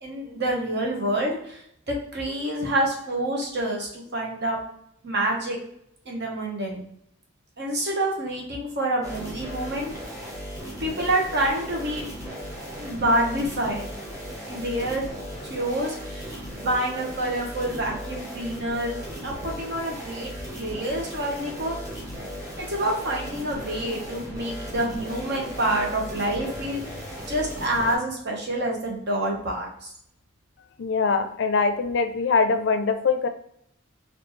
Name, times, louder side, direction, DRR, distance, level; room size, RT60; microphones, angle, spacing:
voice 1, 0.0-4.6 5.0-5.6 6.0-6.8 7.6-9.9 10.8-12.0 12.7-13.9 14.5-15.1 15.5-18.9 19.2-21.8 22.6-29.9, right 1 dB, 55° right, -1 dB, 1.1 m, -27 dB
sound 1, 9.0-28.0, equal, 15° right, 1.3 m, -37 dB
voice 2, 30.8-33.3, left 4 dB, 60° left, 8 dB, 0.4 m, -23 dB
4.3 x 2.7 x 3.1 m, 0.70 s
head